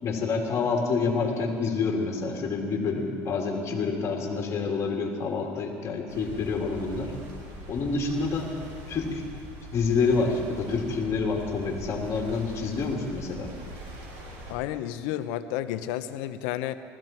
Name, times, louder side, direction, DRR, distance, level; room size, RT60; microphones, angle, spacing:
voice 1, 0.0-7.1 7.7-8.5 8.9-9.2 9.7-13.5, left 4 dB, 40° left, 0 dB, 3.0 m, -28 dB
sound 1, 6.1-14.5, right 1 dB, 65° right, 5.2 m, -42 dB
voice 2, 14.5-16.8, left 12 dB, 75° left, 11 dB, 0.8 m, -31 dB
19.5 x 15.0 x 4.5 m, 2.2 s
supercardioid pair, 100°, 7 cm